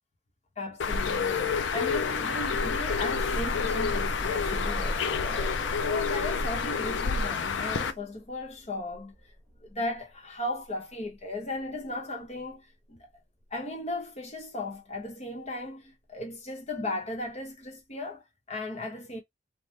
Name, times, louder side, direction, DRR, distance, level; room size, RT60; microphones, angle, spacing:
voice 1, 0.6-5.5 5.8-9.1 9.6-13.1 13.5-19.2, left 2 dB, 35° left, 1.2 m, -36 dB
Bird, 0.8-7.9, left 5 dB, 70° left, 0.5 m, -29 dB
sound 1, 2.3-10.0 11.1-11.2 11.6-11.7, equal, ahead, 1.2 m, -38 dB
3.0 x 2.5 x 3.4 m
head